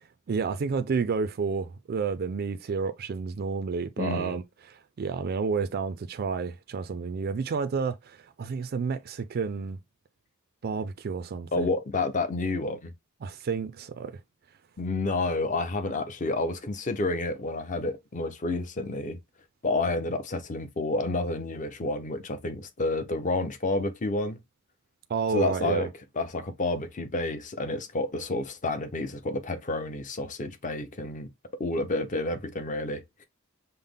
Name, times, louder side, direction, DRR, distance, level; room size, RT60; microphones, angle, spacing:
voice 1, 0.3-9.8 10.6-11.7 13.2-14.1 25.1-25.9, right 5 dB, 45° right, 0.4 m, -30 dB
voice 2, 4.0-4.4 11.5-12.9 14.8-19.2 19.6-24.4 25.3-25.9 26.2-31.3 31.6-33.2, left 2 dB, 35° left, 0.6 m, -30 dB
5.5 x 2.0 x 3.4 m
head